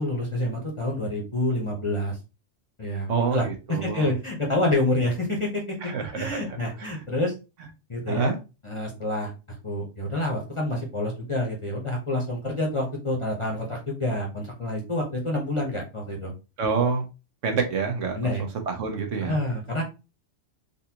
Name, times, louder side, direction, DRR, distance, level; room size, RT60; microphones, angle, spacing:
voice 1, 0.0-2.2 2.8-5.8 6.1-7.3 7.9-8.3 8.6-9.3 9.6-16.3 18.1-18.4 19.2-19.8, left 1 dB, 30° left, 0 dB, 0.8 m, -28 dB
voice 2, 3.1-4.1 5.8-6.4 6.8-6.9 8.1-8.4 16.6-17.1 17.4-18.3 18.7-19.4, right 5 dB, 70° right, 4 dB, 1.1 m, -27 dB
4.0 x 2.6 x 2.8 m, 0.29 s
omnidirectional pair, 1.3 m